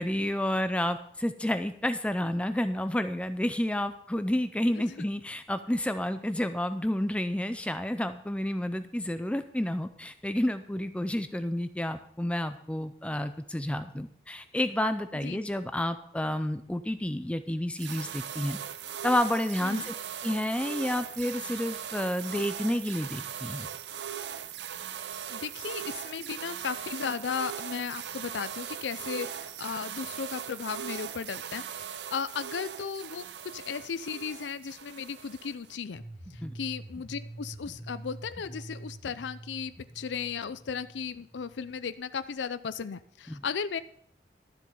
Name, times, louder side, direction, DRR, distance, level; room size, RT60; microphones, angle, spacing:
voice 1, 0.0-18.6 19.0-19.9 20.2-23.7 36.4-36.5 43.3-43.4, left 1 dB, 5° left, 10 dB, 0.4 m, -30 dB
sound 1, 17.8-35.8, right 9 dB, 80° right, 0.6 m, -39 dB
voice 2, 25.3-33.2 33.5-36.0 36.3-43.8, left 6 dB, 90° left, 14 dB, 0.5 m, -36 dB
sound 2, 36.0-41.9, right 1 dB, 15° right, 1.7 m, -46 dB
12.5 x 7.5 x 5.3 m, 0.68 s
head